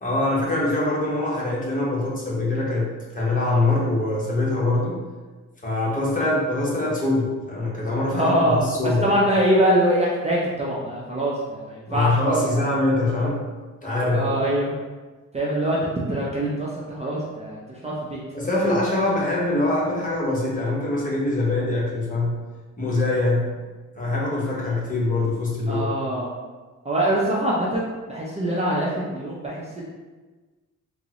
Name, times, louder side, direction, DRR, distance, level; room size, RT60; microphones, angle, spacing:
voice 1, 0.0-5.0 5.6-9.0 11.9-13.4 13.8-14.3 18.3-22.3 22.8-23.5 24.0-25.9, left 2 dB, 25° left, -5 dB, 0.9 m, -23 dB
voice 2, 8.1-8.6 8.8-12.7 14.1-14.7 15.3-15.8 16.1-18.2 25.7-26.3 26.8-29.8, right 1 dB, 20° right, -6 dB, 0.5 m, -24 dB
3.5 x 2.0 x 2.8 m, 1.3 s
cardioid pair, 100°, 32 cm